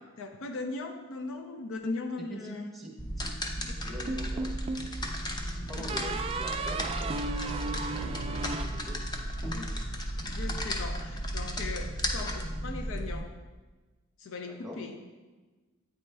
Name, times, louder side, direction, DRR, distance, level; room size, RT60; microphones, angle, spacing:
voice 1, 0.0-2.7 3.9-4.0 5.7-6.0 9.5-9.8 10.2-13.3 14.2-15.0, left 3 dB, 65° left, 5 dB, 0.5 m, -39 dB
voice 2, 2.3-2.9 3.2-3.3 3.6-5.1 5.5-9.1 14.6-14.8, equal, ahead, -2 dB, 1.0 m, -45 dB
sound 1, 3.0-13.2, equal, 20° left, 0.6 m, -34 dB
sound 2, 4.1-4.9 5.9-9.4, right 3 dB, 25° right, 0.3 m, -35 dB
8.7 x 4.3 x 3.3 m, 1.3 s
head